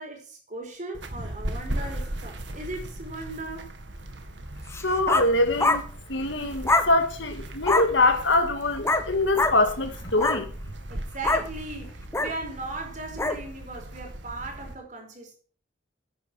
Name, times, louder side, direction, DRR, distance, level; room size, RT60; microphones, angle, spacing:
voice 1, 0.0-3.7 10.9-15.4, right 2 dB, 40° right, 4.4 m, -38 dB
sound 1, 0.9-14.7, right 1 dB, 70° right, 2.0 m, -38 dB
sound 2, 4.7-5.3 5.6-5.8 6.6-6.9 7.6-7.9 8.8-9.1 9.3-9.6 10.1-10.4 11.2-11.5 12.1-12.3 13.2-13.4, left 2 dB, 15° left, 1.0 m, -23 dB
voice 2, 4.8-5.8 6.1-10.5, left 2 dB, 75° left, 1.9 m, -24 dB
10.5 x 10.0 x 6.2 m
head